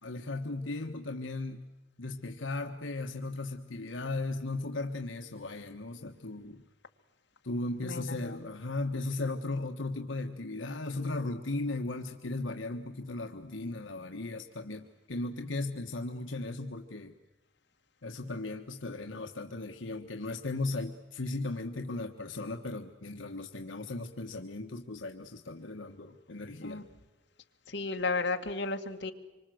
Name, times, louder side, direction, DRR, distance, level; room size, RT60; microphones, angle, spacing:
voice 1, 0.0-1.6 2.0-6.6 7.4-17.1 18.0-26.8, left 2 dB, 85° left, 3 dB, 1.5 m, -36 dB
voice 2, 7.8-8.5 26.6-26.9 27.7-29.1, left 3 dB, 70° left, 3 dB, 2.1 m, -34 dB
26.0 x 25.0 x 7.9 m, 1.1 s
head